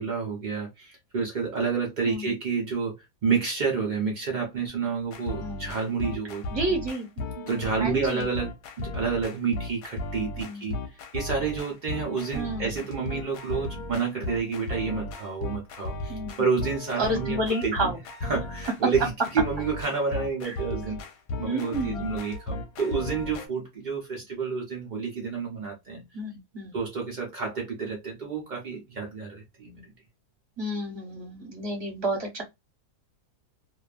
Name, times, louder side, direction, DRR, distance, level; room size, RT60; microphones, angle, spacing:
voice 1, 0.0-3.0 3.2-6.4 7.3-17.9 18.2-21.0 21.4-26.0 26.7-29.9, right 5 dB, 65° right, 0.4 m, -29 dB
sound 1, 5.0-23.5, left 2 dB, 75° left, 1.0 m, -36 dB
voice 2, 5.4-5.8 6.5-7.3 7.8-8.3 10.4-10.7 12.3-12.9 16.1-16.5 17.0-18.0 20.4-20.5 21.4-22.1 26.1-26.8 30.6-32.4, right 1 dB, 25° right, 0.7 m, -31 dB
2.6 x 2.3 x 2.4 m
omnidirectional pair, 1.7 m